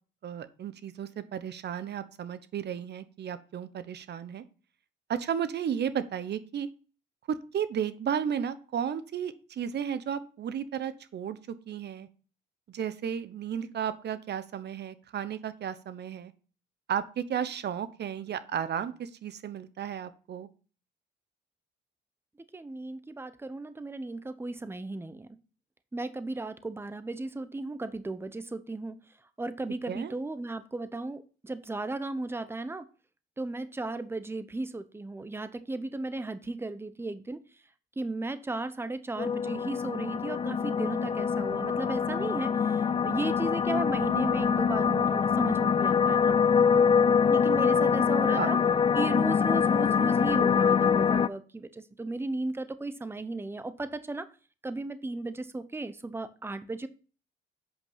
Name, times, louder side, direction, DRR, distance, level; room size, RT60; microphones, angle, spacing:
voice 1, 0.2-4.4 5.1-6.7 7.3-12.1 12.7-16.3 16.9-20.5 29.9-30.1 48.3-48.8, right 8 dB, 60° right, 13 dB, 1.0 m, -34 dB
voice 2, 22.5-25.3 25.9-29.0 29.4-32.9 33.4-37.4 38.0-46.4 47.3-48.6 48.9-54.3 54.6-56.9, right 2 dB, 10° right, 12 dB, 0.8 m, -35 dB
sound 1, 39.2-51.3, left 6 dB, 30° left, 0.4 m, -24 dB
8.1 x 5.3 x 5.6 m, 0.37 s
cardioid pair, 90°, 20 cm